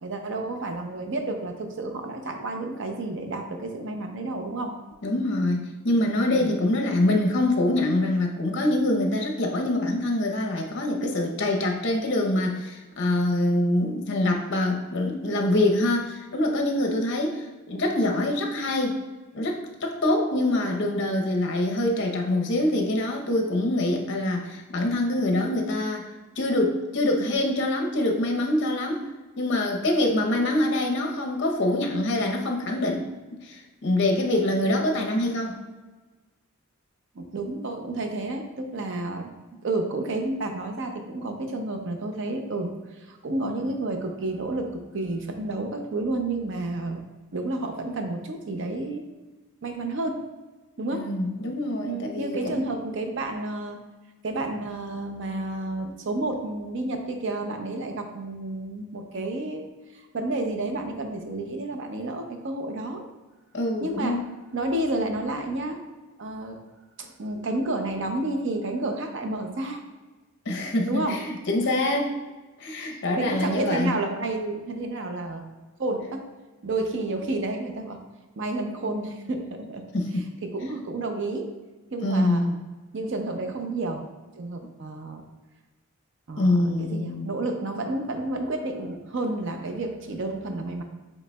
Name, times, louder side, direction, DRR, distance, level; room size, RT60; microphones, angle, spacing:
voice 1, 0.0-4.7 6.3-6.6 37.1-39.3 39.6-47.0 47.3-49.0 49.6-50.2 50.8-51.1 51.8-53.8 54.2-59.7 59.9-63.0 63.8-64.2 64.5-65.8 66.2-66.6 67.0-69.8 70.9-71.2 72.8-75.4 75.8-76.2 76.6-78.0 78.4-79.8 80.4-81.5 81.9-82.5 82.9-84.0 84.3-85.2 86.3-90.8, right 2 dB, 55° right, 4 dB, 0.5 m, -30 dB
voice 2, 5.0-19.0 19.3-26.1 26.4-29.1 29.4-35.6 50.9-52.6 63.5-64.2 70.5-72.1 72.6-73.9 79.9-80.3 82.0-82.5 86.4-87.3, left 1 dB, 55° left, 1 dB, 0.7 m, -25 dB
7.5 x 3.1 x 2.2 m, 1.3 s
head